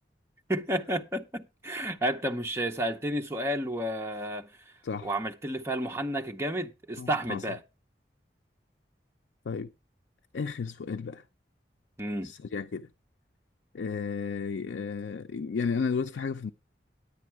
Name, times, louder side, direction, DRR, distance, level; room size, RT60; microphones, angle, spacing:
voice 1, 0.5-4.5 5.0-7.6 12.0-12.3, right 1 dB, 15° right, 0.7 m, -31 dB
voice 2, 7.0-7.5 9.4-9.7 10.3-11.2 12.2-12.9 13.7-16.5, left 5 dB, 80° left, 0.4 m, -33 dB
10.0 x 8.3 x 4.6 m
head